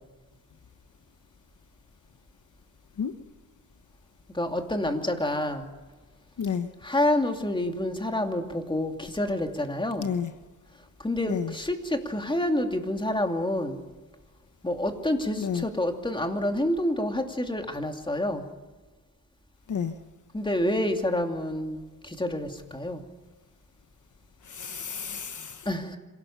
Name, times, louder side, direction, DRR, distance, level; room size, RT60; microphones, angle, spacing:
voice 1, 4.3-5.7 6.8-10.1 11.0-13.8 14.6-18.5 20.3-23.0 25.6-26.0, left 1 dB, 15° left, 5 dB, 2.7 m, -28 dB
voice 2, 6.4-6.7 10.0-10.3 11.2-11.5 15.4-15.7 19.7-19.9 24.4-25.7, left 7 dB, 60° left, 9 dB, 1.2 m, -31 dB
26.5 x 18.0 x 7.2 m, 1.3 s
cardioid pair, 85°, 33 cm